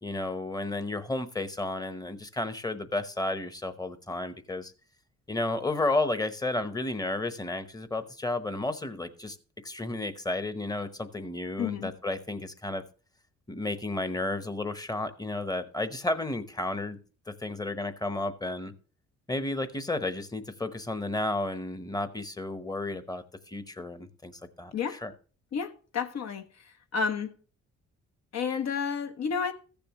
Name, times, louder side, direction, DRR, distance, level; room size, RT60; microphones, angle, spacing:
voice 1, 0.0-4.7 5.3-9.4 9.6-12.8 13.5-17.0 17.4-18.7 19.3-24.3 24.6-25.1, left 2 dB, 10° left, 1.0 m, -32 dB
voice 2, 11.6-11.9 24.7-25.0 25.5-26.4 26.9-27.3 28.3-29.5, left 6 dB, 60° left, 1.1 m, -30 dB
14.5 x 6.9 x 3.0 m
cardioid pair, 90°, 30 cm